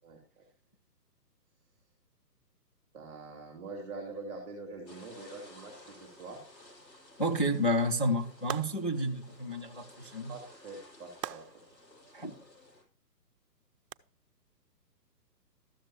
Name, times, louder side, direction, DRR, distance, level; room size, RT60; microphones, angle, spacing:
voice 1, 0.0-0.4 2.9-6.4 10.3-11.7, right 3 dB, 10° right, 2.2 m, -44 dB
sound 1, 4.8-12.8, left 1 dB, 80° left, 5.6 m, -55 dB
voice 2, 7.2-10.3 12.1-12.4, equal, 35° left, 0.4 m, -30 dB
sound 2, 8.5-9.1 11.2-11.8 13.9-14.0, right 10 dB, 70° right, 0.6 m, -40 dB
13.0 x 7.4 x 2.9 m
hypercardioid pair, 165°, 50 cm